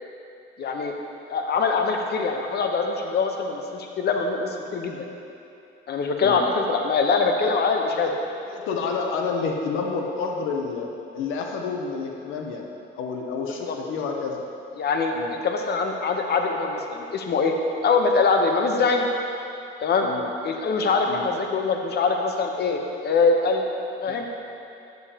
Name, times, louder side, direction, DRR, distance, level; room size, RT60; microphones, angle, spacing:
voice 1, 0.6-1.0 1.3-5.0 5.9-8.2 13.7-13.8 14.8-17.5 17.8-19.1 19.8-20.1 20.4-23.7 24.0-24.3, left 4 dB, 55° left, 3 dB, 0.8 m, -23 dB
voice 2, 8.5-12.6 13.0-14.4 15.1-15.3 20.0-20.3 21.0-21.2 24.1-24.2, left 5 dB, 90° left, 1 dB, 0.7 m, -29 dB
9.2 x 6.9 x 2.8 m, 2.7 s
cardioid pair, 90°, 20 cm